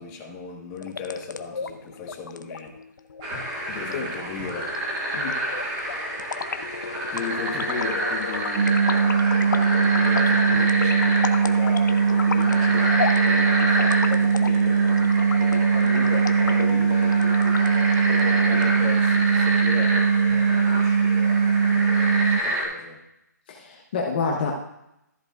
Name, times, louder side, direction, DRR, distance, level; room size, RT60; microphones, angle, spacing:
voice 1, 0.0-2.8 3.7-4.8 7.1-17.3 18.2-23.0, left 5 dB, 15° left, -1 dB, 1.3 m, -37 dB
sound 1, 0.7-18.7, left 5 dB, 80° left, 0.8 m, -34 dB
sound 2, 3.2-22.7, right 1 dB, 20° right, 2.0 m, -29 dB
sound 3, 8.6-22.4, right 6 dB, 45° right, 0.5 m, -20 dB
voice 2, 23.5-24.5, left 5 dB, 30° left, -1 dB, 1.0 m, -27 dB
14.0 x 7.7 x 2.5 m, 0.84 s
hypercardioid pair, 170°, 10 cm